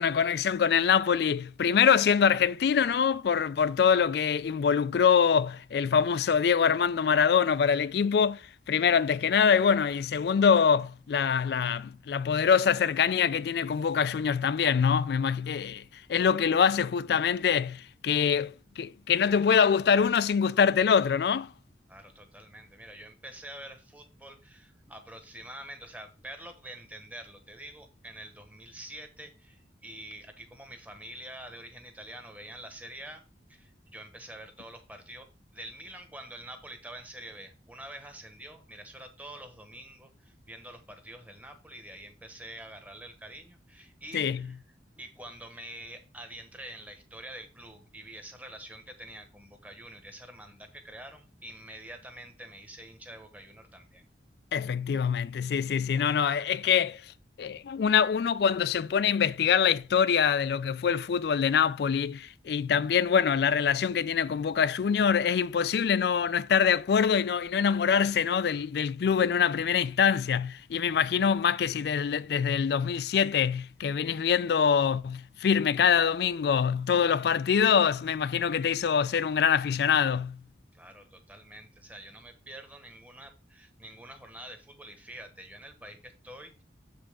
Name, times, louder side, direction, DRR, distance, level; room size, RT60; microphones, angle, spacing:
voice 1, 0.0-21.5 44.1-44.5 54.5-80.4, left 7 dB, 55° left, 0.3 m, -24 dB
voice 2, 21.9-33.2 33.5-44.6 45.0-54.1 80.7-86.6, right 1 dB, 10° right, 1.0 m, -46 dB
7.3 x 5.3 x 3.6 m
head